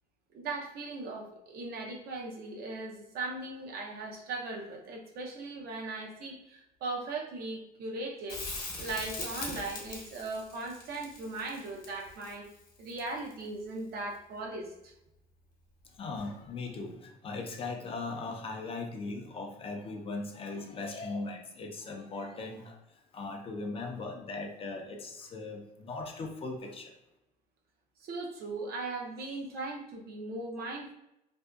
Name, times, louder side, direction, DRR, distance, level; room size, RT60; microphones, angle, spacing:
voice 1, 0.3-8.4 8.8-12.5 12.8-14.9 28.0-30.9, right 3 dB, 65° right, 0 dB, 0.6 m, -38 dB
Crackle, 8.3-13.4 16.2-16.3, left 3 dB, 60° left, 0.8 m, -41 dB
voice 2, 15.9-26.9, left 3 dB, 35° left, 3 dB, 0.4 m, -39 dB
2.6 x 2.1 x 2.3 m, 0.86 s
cardioid pair, 110°, 17 cm